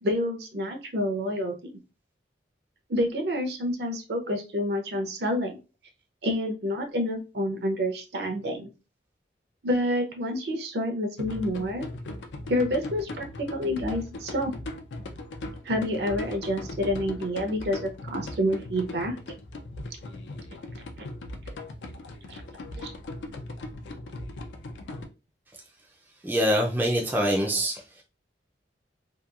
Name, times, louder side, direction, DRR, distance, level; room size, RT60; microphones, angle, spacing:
voice 1, 0.0-1.7 2.9-5.6 6.2-8.7 9.6-11.9 12.5-14.5 15.6-19.2 21.0-21.1 22.3-22.4 22.8-22.9, equal, 65° right, 0.6 m, -28 dB
sound 1, 11.2-25.0, left 2 dB, 80° left, 0.4 m, -39 dB
voice 2, 26.2-28.0, equal, 10° right, 0.3 m, -25 dB
2.9 x 2.3 x 2.3 m
head